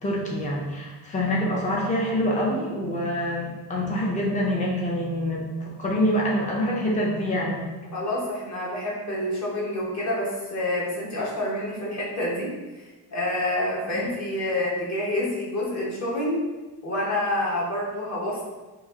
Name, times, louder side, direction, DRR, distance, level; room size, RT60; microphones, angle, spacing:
voice 1, 0.0-7.7 13.9-14.1, equal, 20° left, -3 dB, 0.5 m, -26 dB
voice 2, 7.9-12.5 13.1-16.4 16.8-18.4, left 1 dB, 40° left, -5 dB, 0.9 m, -27 dB
3.1 x 2.4 x 3.6 m, 1.2 s
cardioid pair, 145°, 43 cm